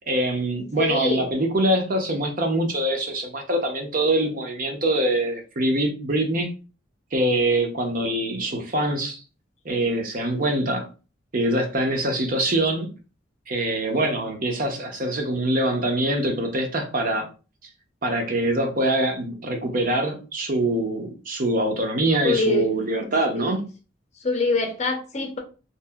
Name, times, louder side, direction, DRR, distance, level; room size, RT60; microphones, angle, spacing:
voice 1, 0.1-6.5 7.1-9.2 9.6-10.9 11.3-12.9 13.5-17.3 18.0-23.7, right 1 dB, 45° right, 0.6 m, -24 dB
voice 2, 0.8-1.3 22.2-22.7 23.3-23.5 24.2-25.4, left 2 dB, 35° left, 0.6 m, -24 dB
2.8 x 2.5 x 2.3 m
head